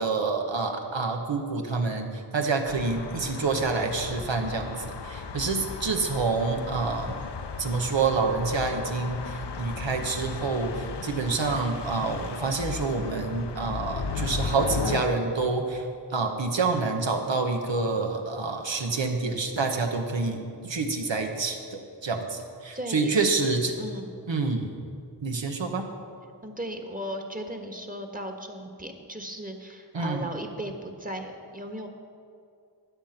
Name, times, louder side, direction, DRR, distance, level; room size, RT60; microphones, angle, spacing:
voice 1, 0.0-7.1 7.6-23.7 24.3-24.7 25.2-25.8 29.9-30.3, right 4 dB, 85° right, 4 dB, 1.4 m, -27 dB
sound 1, 2.7-15.0, left 5 dB, 70° left, 0.8 m, -35 dB
voice 2, 22.7-23.3 23.8-24.1 26.4-31.9, equal, 20° right, 4 dB, 1.5 m, -36 dB
13.0 x 9.3 x 5.9 m, 2.4 s
wide cardioid pair, 50°, 44 cm